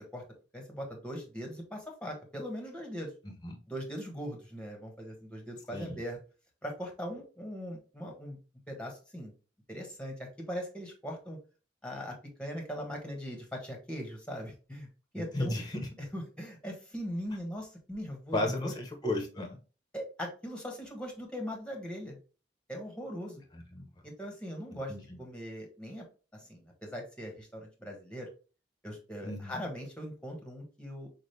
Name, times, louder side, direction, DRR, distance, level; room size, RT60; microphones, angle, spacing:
voice 1, 0.5-3.1 3.7-6.2 6.6-8.4 8.7-9.3 9.7-11.4 11.8-14.9 15.1-15.6 16.0-18.7 19.9-22.2 22.7-23.4 24.0-24.9 25.2-26.0 26.3-28.3 28.8-31.1, equal, 5° left, 2 dB, 1.4 m, -40 dB
voice 2, 3.2-3.6 5.7-6.0 15.2-15.9 18.3-19.6 23.5-23.8 24.9-25.2 29.2-29.6, left 1 dB, 25° left, 3 dB, 1.1 m, -34 dB
6.3 x 2.4 x 3.3 m, 0.34 s
head